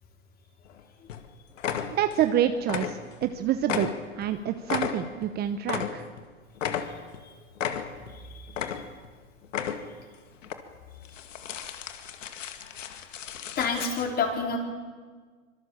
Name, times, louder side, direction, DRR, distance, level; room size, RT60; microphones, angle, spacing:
sound 1, 0.7-0.8 1.1-1.3 1.6-2.3 2.6-3.3 3.6-6.2 6.6-7.2 7.6-8.1 8.5-9.1 9.4-10.0 10.4-10.6 11.0-14.0, left 8 dB, 75° left, 2.2 m, -34 dB
voice 1, 2.0-6.1, right 10 dB, 25° right, 9 dB, 0.9 m, -27 dB
voice 2, 8.1-8.5 13.6-14.6, left 4 dB, 25° left, 2 dB, 4.7 m, -29 dB
25.0 x 22.5 x 7.3 m, 1.5 s
hypercardioid pair, 125°, 38 cm